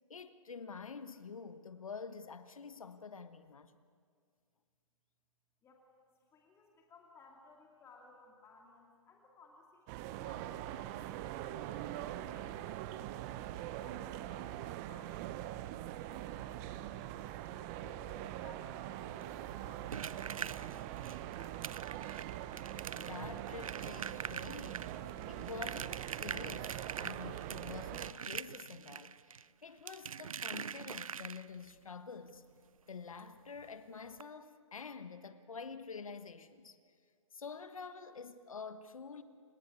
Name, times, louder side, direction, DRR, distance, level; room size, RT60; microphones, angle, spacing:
voice 1, 0.1-3.7 22.9-32.4 32.9-36.8 37.3-39.2, left 5 dB, 75° left, 11 dB, 1.3 m, -48 dB
voice 2, 6.3-11.0 11.5-15.4 16.0-17.2 17.5-21.7, left 3 dB, 15° left, 0 dB, 2.5 m, -61 dB
sound 1, 9.9-28.1, right 13 dB, 30° right, 0.9 m, -43 dB
sound 2, 19.2-31.7 33.2-33.3 33.6-33.7 34.1-34.2, right 7 dB, 80° right, 0.5 m, -44 dB
29.0 x 18.0 x 8.4 m, 2.1 s
figure-of-eight pair, 130°, 17 cm